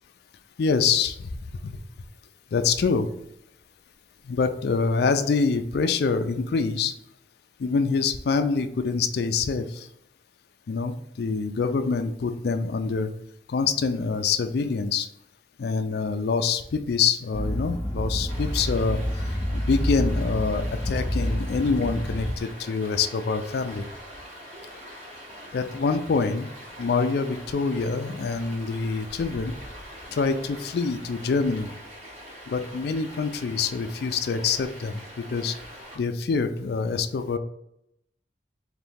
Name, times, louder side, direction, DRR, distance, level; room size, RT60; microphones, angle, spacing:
voice 1, 0.6-1.3 1.6-1.7 2.5-3.1 4.2-6.9 7.6-9.9 10.7-13.1 13.5-15.1 15.6-19.0 19.5-23.8 25.5-26.5 26.8-29.5 30.1-31.7 32.5-35.6 36.0-37.4, left 5 dB, 60° left, 8 dB, 0.4 m, -25 dB
sound 1, 17.3-22.4, equal, 15° left, 0.8 m, -28 dB
Stream, 18.3-36.0, equal, 35° right, 1.3 m, -43 dB
4.0 x 2.6 x 3.5 m, 0.77 s
head